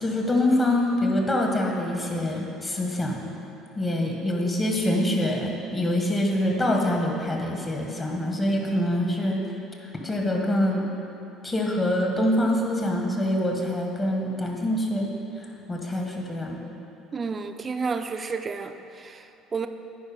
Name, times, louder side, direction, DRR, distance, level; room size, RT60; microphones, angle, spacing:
voice 1, 0.0-3.2 3.7-9.4 10.0-10.8 11.4-15.1 15.7-16.6, left 1 dB, 25° left, 0 dB, 1.5 m, -25 dB
voice 2, 17.1-18.7 19.0-19.2 19.5-19.7, right 5 dB, 35° right, 8 dB, 0.5 m, -30 dB
9.5 x 4.7 x 5.2 m, 2.9 s
hypercardioid pair, 65°, 0 cm